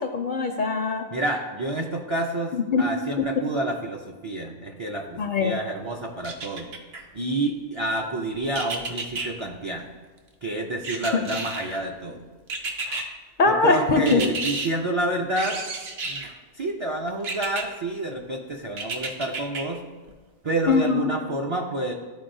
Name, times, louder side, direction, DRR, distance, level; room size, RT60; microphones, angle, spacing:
voice 1, 0.0-1.1 2.5-2.9 3.2-3.3 5.2-5.6 12.9-13.1 13.4-14.3 20.7-21.1, left 4 dB, 60° left, 5 dB, 0.5 m, -22 dB
voice 2, 1.1-6.7 7.1-9.8 10.4-12.2 13.4-15.6 16.0-16.3 16.6-19.8 20.4-21.9, right 2 dB, 45° right, 0 dB, 0.4 m, -29 dB
sound 1, 6.2-7.0 8.5-9.3 10.8-11.8 12.5-13.0 14.1-14.7 15.4-16.3 17.2-17.6 18.8-19.6 20.1-20.2, right 3 dB, 65° right, 1.0 m, -31 dB
12.0 x 4.1 x 2.6 m, 1.4 s
omnidirectional pair, 1.2 m